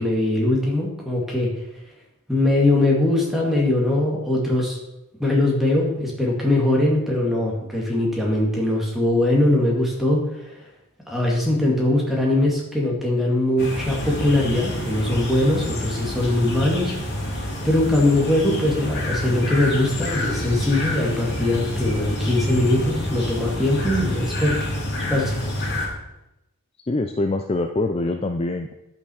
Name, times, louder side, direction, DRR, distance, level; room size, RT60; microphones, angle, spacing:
voice 1, 0.0-1.5 2.3-4.8 5.2-10.6 11.1-16.9 17.6-24.5 25.1-25.4, left 1 dB, ahead, -3 dB, 2.2 m, -21 dB
sound 1, 13.6-25.9, left 1 dB, 45° left, 2.9 m, -28 dB
voice 2, 26.9-28.7, left 2 dB, 25° left, 6 dB, 0.4 m, -24 dB
11.0 x 5.9 x 6.3 m, 0.92 s
head